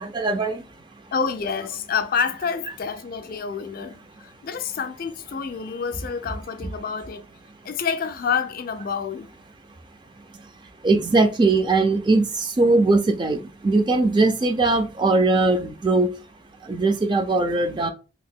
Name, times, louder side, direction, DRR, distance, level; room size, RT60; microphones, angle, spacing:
voice 1, 0.0-0.6 10.8-16.1 16.7-17.9, right 3 dB, 25° right, 0.4 m, -20 dB
voice 2, 1.1-7.3 7.6-9.3 12.7-12.8, left 6 dB, 50° left, 0.3 m, -28 dB
2.8 x 2.1 x 3.5 m
head